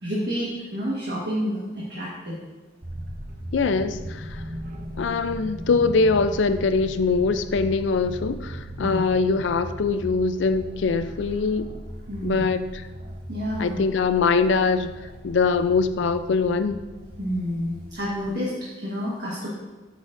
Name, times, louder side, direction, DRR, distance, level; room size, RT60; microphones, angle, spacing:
voice 1, 0.0-2.4 8.8-9.0 12.1-12.4 13.3-13.8 17.2-19.5, equal, 55° right, -7 dB, 1.3 m, -29 dB
sound 1, 2.8-18.3, right 1 dB, 40° right, 0.8 m, -38 dB
voice 2, 3.5-4.4 5.0-11.7 12.2-12.6 13.6-14.9 15.2-16.8, left 4 dB, 75° left, 11 dB, 0.4 m, -22 dB
8.2 x 6.5 x 2.5 m, 1.3 s
head